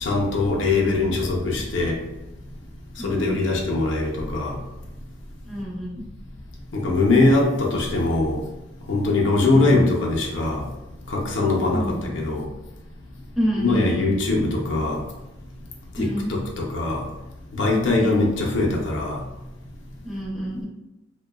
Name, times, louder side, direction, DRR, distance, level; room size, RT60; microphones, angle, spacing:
voice 1, 0.0-2.0 3.0-4.6 6.7-8.4 8.9-10.6 11.1-12.4 13.6-15.0 16.0-17.0 17.5-19.2, left 2 dB, 80° left, -2 dB, 0.6 m, -22 dB
voice 2, 0.7-1.5 3.0-3.5 5.4-6.0 11.7-12.0 13.3-14.1 16.0-16.3 17.9-18.3 20.0-20.6, equal, ahead, -5 dB, 0.5 m, -29 dB
2.7 x 2.1 x 2.2 m, 0.99 s
head